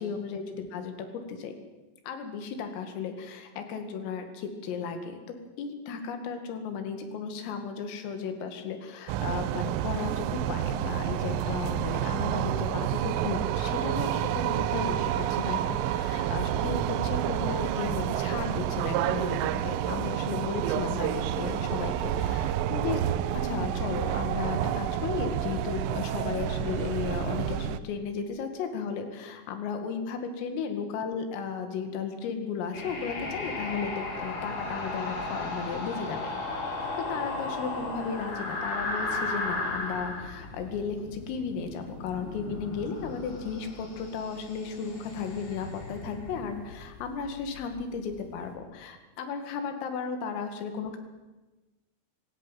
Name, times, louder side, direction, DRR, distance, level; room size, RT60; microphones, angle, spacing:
voice 1, 0.0-1.5 2.1-23.0 23.4-36.3 36.8-51.0, left 6 dB, 85° left, 7 dB, 4.8 m, -35 dB
sound 1, 9.1-27.8, right 11 dB, 80° right, 3.2 m, -29 dB
sound 2, 32.7-48.5, left 2 dB, 50° left, 5.6 m, -36 dB
25.0 x 13.5 x 9.3 m, 1.2 s
omnidirectional pair, 5.8 m